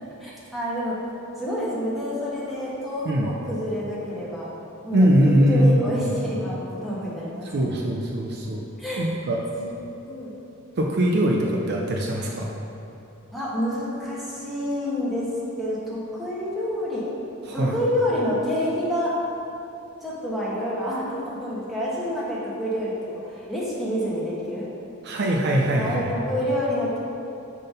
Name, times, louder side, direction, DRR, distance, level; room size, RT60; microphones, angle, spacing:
voice 1, 0.2-1.0 1.4-4.5 4.8-5.1 5.5-7.7 8.8-9.1 9.5-9.7 10.0-10.4 13.3-15.3 15.6-17.0 17.5-19.2 20.0-24.7 25.7-27.0, equal, ahead, -8 dB, 1.2 m, -28 dB
voice 2, 4.9-6.1 7.4-8.6 9.0-9.4 10.8-12.5 17.5-17.8 25.0-26.1, right 1 dB, 50° right, -1 dB, 0.5 m, -21 dB
5.7 x 3.6 x 5.3 m, 2.8 s
head